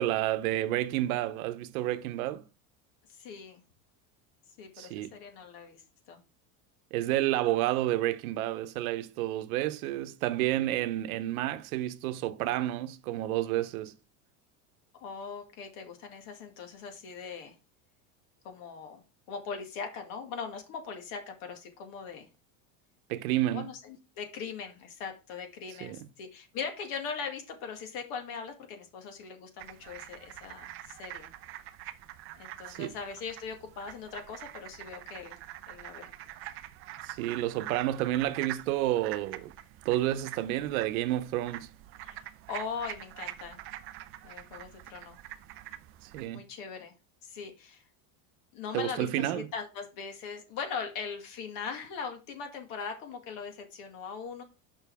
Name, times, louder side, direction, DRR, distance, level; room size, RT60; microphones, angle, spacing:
voice 1, 0.0-2.4 4.8-5.1 6.9-13.9 23.1-23.7 25.8-26.0 32.8-32.9 37.0-39.5 39.8-41.7 46.0-46.4 48.7-49.5, right 14 dB, 85° right, 0.9 m, -30 dB
voice 2, 3.1-3.6 4.6-5.8 6.1-6.2 15.0-17.5 18.4-22.3 23.5-31.3 32.4-35.4 35.7-36.1 42.0-42.2 42.5-43.6 44.2-45.2 46.3-46.9 47.2-47.8 48.5-54.4, left 6 dB, 55° left, 2.1 m, -40 dB
sound 1, 29.6-46.3, right 14 dB, 35° right, 0.4 m, -45 dB
6.9 x 5.5 x 3.5 m
cardioid pair, 160°, 41 cm